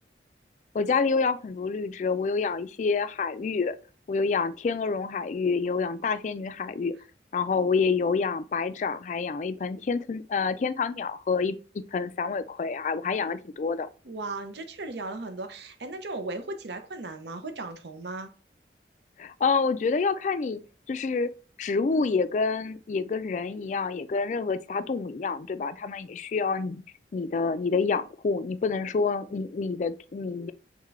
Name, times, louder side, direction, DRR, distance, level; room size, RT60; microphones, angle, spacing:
voice 1, 0.7-3.8 4.1-6.9 7.3-11.6 11.9-13.9 19.2-20.6 20.9-21.3 21.6-26.8 27.1-30.5, left 4 dB, 45° left, 0.3 m, -27 dB
voice 2, 14.0-18.3, right 2 dB, 75° right, 0.7 m, -36 dB
3.7 x 3.6 x 3.1 m
head